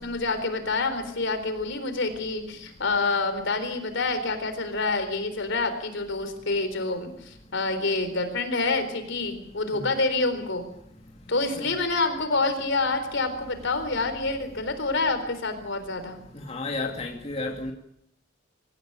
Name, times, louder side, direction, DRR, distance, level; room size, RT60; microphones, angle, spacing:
voice 1, 0.0-10.7 11.3-16.2, left 3 dB, 65° left, 4.0 m, -27 dB
voice 2, 16.3-17.7, left 2 dB, 35° left, 2.4 m, -32 dB
25.0 x 15.0 x 9.0 m
head